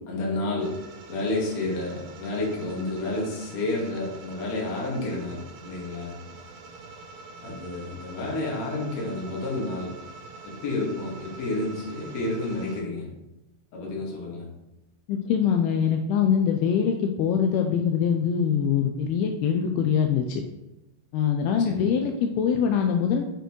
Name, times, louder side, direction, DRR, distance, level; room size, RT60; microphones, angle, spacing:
voice 1, 0.1-0.7 1.1-6.2 7.4-9.9 10.4-13.1 13.7-14.5 21.6-21.8, left 2 dB, 50° left, -3 dB, 2.5 m, -30 dB
sound 1, 0.6-12.8, right 3 dB, 75° right, 2.3 m, -45 dB
voice 2, 15.1-20.4 21.1-23.2, left 7 dB, 85° left, 4 dB, 2.5 m, -23 dB
6.8 x 6.7 x 3.1 m, 0.93 s
omnidirectional pair, 4.6 m